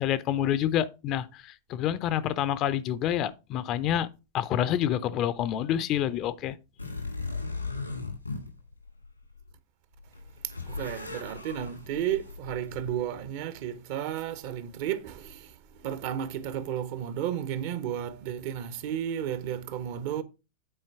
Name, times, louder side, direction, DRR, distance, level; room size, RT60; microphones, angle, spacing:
voice 1, 0.0-4.1 4.3-6.6, left 11 dB, 35° left, 0.5 m, -28 dB
sound 1, 6.8-9.5 10.0-13.3, left 3 dB, 85° left, 2.1 m, -38 dB
voice 2, 10.4-15.5 15.8-20.2, right 10 dB, 50° right, 0.8 m, -33 dB
8.9 x 4.5 x 4.5 m
figure-of-eight pair, 90°, 0 cm